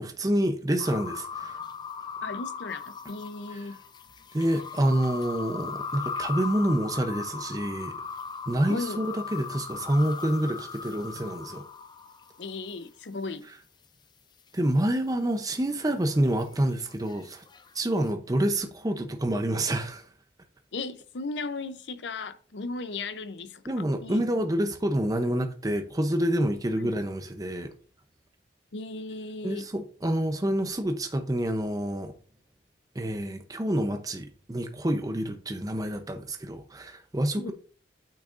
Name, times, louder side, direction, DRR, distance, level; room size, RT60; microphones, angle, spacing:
voice 1, 0.0-1.6 3.5-3.7 4.3-7.9 8.5-11.6 14.5-17.4 17.7-20.0 23.7-27.7 29.4-32.1 32.9-37.5, right 1 dB, 20° right, 0.6 m, -27 dB
sound 1, 0.8-12.5 15.9-18.1, left 5 dB, 25° left, 0.4 m, -38 dB
voice 2, 2.2-3.8 8.7-9.1 12.4-13.4 20.7-23.6 24.0-24.3 24.6-24.7 26.7-26.9 28.7-29.6 37.4-37.5, left 3 dB, 80° left, 0.6 m, -36 dB
8.7 x 6.4 x 2.5 m
head